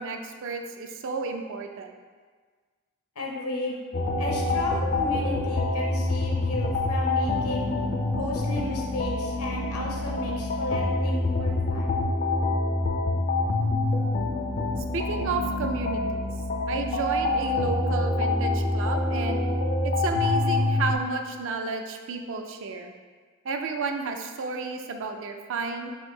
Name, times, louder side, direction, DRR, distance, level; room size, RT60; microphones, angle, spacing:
voice 1, 0.0-1.9 9.5-9.6 14.9-16.3 16.7-19.4 19.8-22.9 23.4-25.9, right 4 dB, 60° right, 5 dB, 0.4 m, -32 dB
voice 2, 3.1-3.8 4.2-7.7 8.1-12.0, left 1 dB, 80° left, -1 dB, 0.9 m, -34 dB
sound 1, 3.9-21.0, left 2 dB, 40° left, 0.4 m, -26 dB
4.3 x 2.6 x 4.6 m, 1.5 s
head